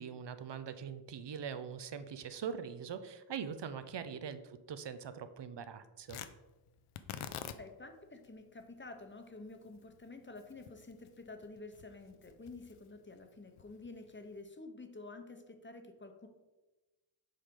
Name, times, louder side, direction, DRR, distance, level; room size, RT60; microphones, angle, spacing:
voice 1, 0.0-6.2, right 7 dB, 60° right, 11 dB, 0.6 m, -42 dB
Tearing, 6.1-14.4, left 9 dB, 80° left, 0.6 m, -50 dB
voice 2, 7.6-16.3, left 3 dB, 25° left, 6 dB, 0.8 m, -50 dB
7.6 x 4.9 x 3.7 m, 1.1 s
wide cardioid pair, 95°, 49 cm